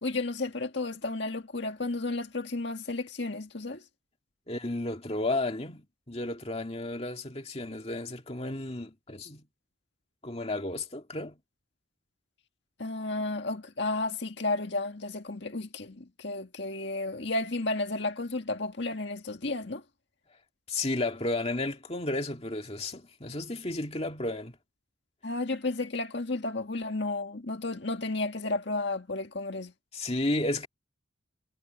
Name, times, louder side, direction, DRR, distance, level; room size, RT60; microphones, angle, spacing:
voice 1, 0.0-3.8 12.8-19.8 25.2-29.7, left 2 dB, 55° left, 1.9 m, -32 dB
voice 2, 4.5-9.4 10.2-11.4 20.7-24.5 29.9-30.7, left 2 dB, 30° left, 2.1 m, -32 dB
head